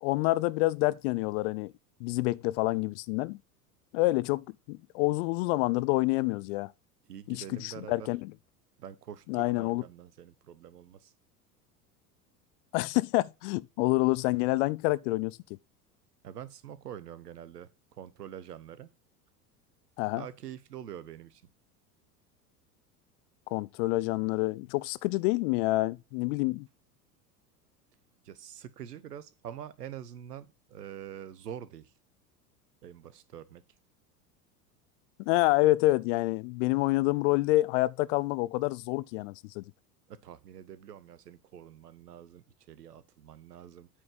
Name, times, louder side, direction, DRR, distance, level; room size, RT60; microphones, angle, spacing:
voice 1, 0.0-1.7 2.0-3.4 3.9-6.7 7.3-8.3 9.3-9.8 12.7-15.4 20.0-20.2 23.5-26.7 35.3-39.6, left 20 dB, 50° left, 0.5 m, -27 dB
voice 2, 7.1-8.1 8.8-11.1 16.2-18.9 20.2-21.4 28.2-31.9 32.8-33.6 40.1-43.9, right 9 dB, 85° right, 1.0 m, -45 dB
8.8 x 4.8 x 5.4 m
hypercardioid pair, 80°, 46 cm